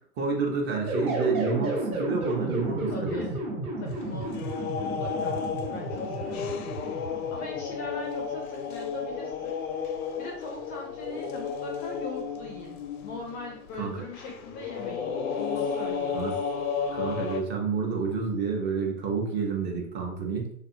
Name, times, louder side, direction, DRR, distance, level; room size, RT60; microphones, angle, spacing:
voice 1, 0.2-3.2 13.8-14.0 16.1-16.4 16.9-20.5, right 5 dB, 25° right, 1 dB, 0.6 m, -29 dB
sound 1, 0.9-7.8, right 1 dB, 90° right, 1.5 m, -32 dB
voice 2, 2.9-3.3 3.8-4.4 4.8-5.5 5.7-6.5 7.3-9.8 10.2-16.2, left 3 dB, 20° left, -1 dB, 0.4 m, -40 dB
sound 2, 3.9-17.4, left 6 dB, 80° left, 0.6 m, -33 dB
2.5 x 2.4 x 2.7 m, 0.64 s
hypercardioid pair, 105°, 43 cm